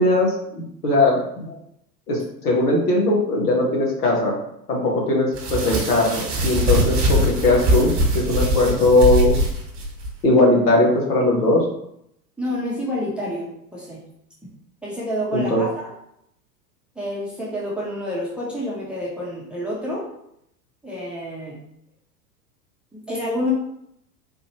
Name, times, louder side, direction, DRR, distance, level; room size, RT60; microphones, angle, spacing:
voice 1, 0.0-1.5 2.1-4.4 4.7-9.3 10.2-11.6 15.3-15.6, left 2 dB, 65° left, -2 dB, 1.5 m, -19 dB
sound 1, 5.3-10.1, equal, 35° right, 1.5 m, -21 dB
voice 2, 12.4-14.0 14.8-15.9 17.0-20.0 20.8-21.5 22.9-23.5, equal, ahead, -7 dB, 1.0 m, -28 dB
4.2 x 2.7 x 3.1 m, 0.75 s
figure-of-eight pair, 90°, 49 cm